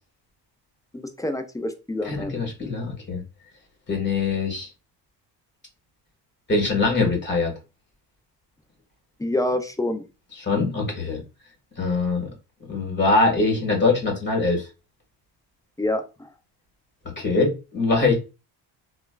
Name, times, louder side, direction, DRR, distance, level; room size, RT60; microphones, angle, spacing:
voice 1, 0.9-2.4 9.2-10.0 15.8-16.3, left 1 dB, 10° left, 0.3 m, -27 dB
voice 2, 2.0-3.2 3.9-4.7 6.5-7.5 10.4-11.2 11.8-12.3 12.7-14.6 17.2-18.1, left 3 dB, 25° left, 1.6 m, -22 dB
3.0 x 2.2 x 2.3 m
cardioid pair, 90°, 43 cm